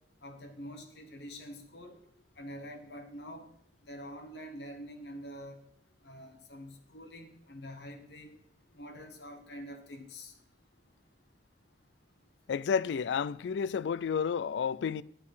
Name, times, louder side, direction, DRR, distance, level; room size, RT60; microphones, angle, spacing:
voice 1, 0.2-1.9 2.4-3.4 3.9-5.6 6.0-8.4 8.7-10.3, equal, 70° left, 1.6 m, -46 dB
voice 2, 12.5-15.0, left 6 dB, 85° left, 0.3 m, -31 dB
10.5 x 6.6 x 5.6 m
head